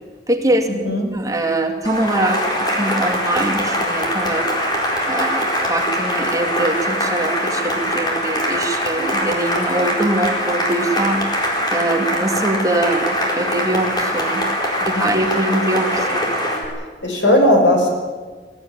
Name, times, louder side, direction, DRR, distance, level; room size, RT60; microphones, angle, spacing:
voice 1, 0.3-4.5 5.1-14.5 14.8-16.3, right 1 dB, 20° right, 3 dB, 2.3 m, -22 dB
voice 2, 0.8-1.2 14.9-15.0 17.0-17.9, left 1 dB, 80° left, 2 dB, 5.8 m, -16 dB
Cheering / Applause, 1.8-16.7, equal, 25° left, 4.4 m, -22 dB
22.0 x 15.5 x 9.6 m, 1.5 s
head